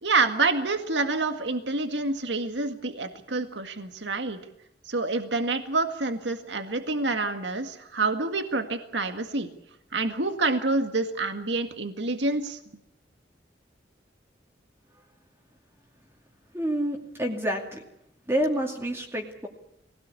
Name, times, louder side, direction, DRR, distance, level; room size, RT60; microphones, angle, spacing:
voice 1, 0.0-4.4 4.8-9.5 9.9-12.6, right 3 dB, 75° right, 7 dB, 1.9 m, -27 dB
voice 2, 16.5-17.8 18.3-19.5, equal, 15° right, 1 dB, 2.5 m, -28 dB
22.5 x 17.5 x 8.4 m, 0.79 s
head